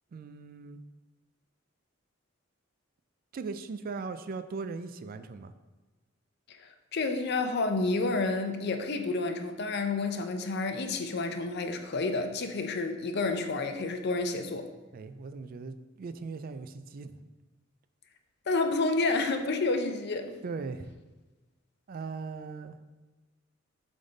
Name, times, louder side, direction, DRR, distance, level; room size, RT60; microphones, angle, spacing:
voice 1, 0.1-0.8 3.3-5.5 14.9-17.3 20.4-20.9 21.9-22.8, right 4 dB, 45° right, 11 dB, 0.3 m, -39 dB
voice 2, 6.5-14.7 18.5-20.3, left 3 dB, 55° left, 6 dB, 0.6 m, -30 dB
7.5 x 3.6 x 3.9 m, 1.2 s
head